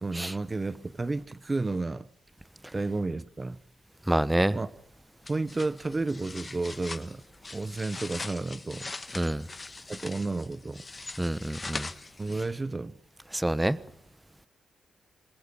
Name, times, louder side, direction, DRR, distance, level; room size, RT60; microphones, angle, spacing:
voice 1, 0.0-2.1 2.7-3.6 4.5-4.7 5.3-7.2 7.5-8.9 9.9-10.8 12.2-13.0, right 3 dB, 30° right, 1.1 m, -32 dB
voice 2, 4.1-4.6 9.1-9.4 11.2-11.9 13.3-13.8, right 1 dB, 10° right, 1.2 m, -26 dB
sound 1, 5.2-12.7, left 3 dB, 35° left, 1.7 m, -42 dB
27.0 x 20.5 x 7.1 m
supercardioid pair, 50°, 0 cm